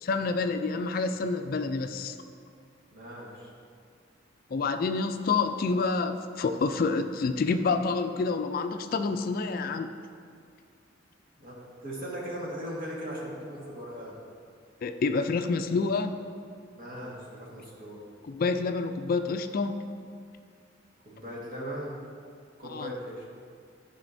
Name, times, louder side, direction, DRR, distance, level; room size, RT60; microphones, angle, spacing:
voice 1, 0.0-2.2 4.5-9.9 14.8-16.1 18.3-19.8 22.7-22.9, left 4 dB, 50° left, 8 dB, 0.3 m, -28 dB
voice 2, 2.9-3.5 11.4-14.2 16.7-18.0 21.0-22.0 22.6-23.2, equal, 50° right, -4 dB, 1.7 m, -38 dB
13.5 x 5.1 x 2.6 m, 2.2 s
head